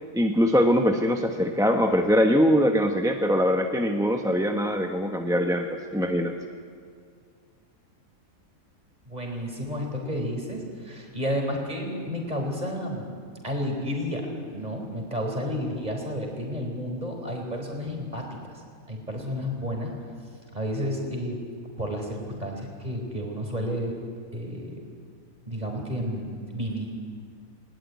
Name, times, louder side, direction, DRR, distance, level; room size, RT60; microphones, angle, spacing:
voice 1, 0.1-6.3, equal, 5° right, 3 dB, 1.0 m, -22 dB
voice 2, 9.0-13.1 13.4-18.4 18.9-19.9 20.5-21.4 21.8-23.9 24.3-24.7 25.5-26.9, equal, 30° right, 2 dB, 4.4 m, -31 dB
19.5 x 19.5 x 9.5 m, 2.1 s
omnidirectional pair, 1.5 m